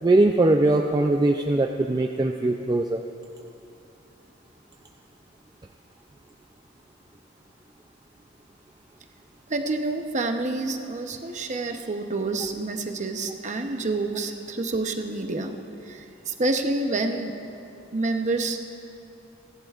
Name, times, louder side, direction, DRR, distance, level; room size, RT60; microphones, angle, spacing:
voice 1, 0.0-3.0, right 2 dB, 20° right, 4 dB, 0.4 m, -21 dB
voice 2, 9.5-15.5 15.9-17.4 17.9-18.6, right 2 dB, 35° right, 5 dB, 0.8 m, -28 dB
29.5 x 11.5 x 2.4 m, 2.7 s
head